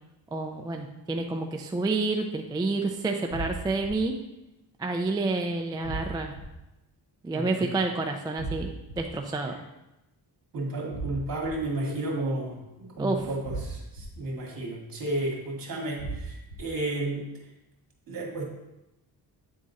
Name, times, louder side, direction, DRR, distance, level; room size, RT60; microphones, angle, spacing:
voice 1, 0.3-4.2 4.8-6.3 7.2-8.7 9.0-9.6 13.0-13.3, right 3 dB, 10° right, 2 dB, 0.3 m, -29 dB
sound 1, 3.3-3.9 5.8-6.4 8.4-8.9 10.9-11.5 13.4-14.0 16.0-16.6, right 3 dB, 25° left, 2.2 m, -35 dB
voice 2, 7.3-7.7 10.5-17.2 18.1-18.5, right 2 dB, 55° right, -1 dB, 1.9 m, -32 dB
8.7 x 3.7 x 4.0 m, 0.94 s
cardioid pair, 145°, 42 cm